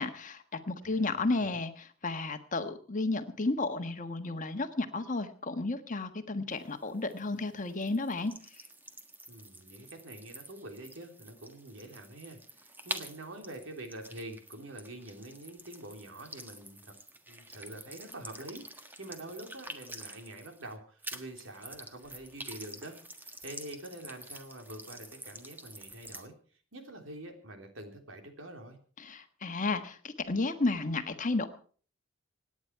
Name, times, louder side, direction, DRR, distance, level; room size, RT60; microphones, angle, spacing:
voice 1, 0.0-8.3 29.0-31.5, left 3 dB, 40° left, 8 dB, 1.4 m, -32 dB
voice 2, 0.8-1.6 9.3-16.9 17.3-26.3 26.7-28.8, right 1 dB, 80° right, 4 dB, 3.4 m, -46 dB
sound 1, 6.5-20.8 21.0-26.3, right 1 dB, 10° right, 1.5 m, -47 dB
27.0 x 9.7 x 4.6 m, 0.43 s
head